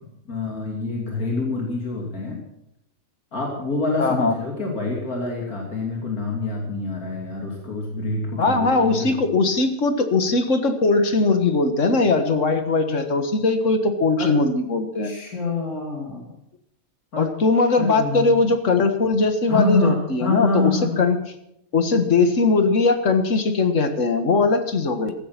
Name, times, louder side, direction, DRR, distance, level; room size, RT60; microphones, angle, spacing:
voice 1, 0.3-2.4 3.3-9.2 14.2-14.3 15.0-16.4 17.1-17.3 17.8-18.4 19.5-21.0, left 3 dB, 85° left, -1 dB, 3.3 m, -26 dB
voice 2, 4.0-4.4 8.4-15.1 17.2-21.2 21.7-25.1, left 3 dB, 60° left, 8 dB, 1.9 m, -20 dB
15.5 x 13.5 x 5.9 m, 0.78 s
omnidirectional pair, 1.5 m